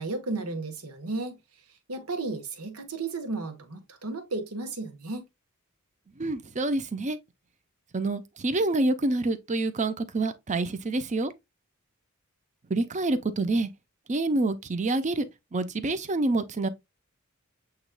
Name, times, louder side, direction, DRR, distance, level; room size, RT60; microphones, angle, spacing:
voice 1, 0.0-1.4 1.9-5.3, right 3 dB, 85° right, 1.2 m, -33 dB
voice 2, 6.2-7.2 7.9-11.3 12.7-13.7 14.1-15.2 15.5-16.7, right 2 dB, 35° right, 0.6 m, -27 dB
7.9 x 3.0 x 2.2 m
head